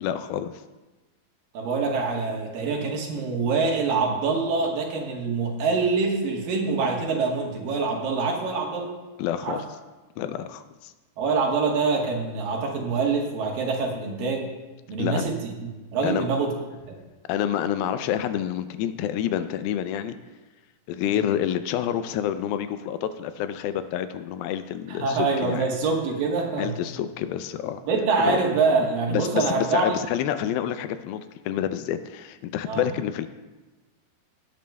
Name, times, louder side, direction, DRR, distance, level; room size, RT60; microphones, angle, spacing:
voice 1, 0.0-0.5 9.2-9.6 10.2-10.9 15.0-15.2 16.0-16.3 17.3-20.2 20.9-25.7 26.6-27.8 28.2-28.4 28.8-33.3, left 10 dB, 85° left, 11 dB, 2.3 m, -28 dB
voice 2, 1.5-8.9 9.4-9.6 11.2-14.5 14.9-15.4 15.9-16.5 21.1-21.3 24.9-26.7 27.9-30.0 32.6-32.8, right 4 dB, 70° right, 0 dB, 2.9 m, -25 dB
17.0 x 10.5 x 2.2 m, 1.2 s
omnidirectional pair, 4.3 m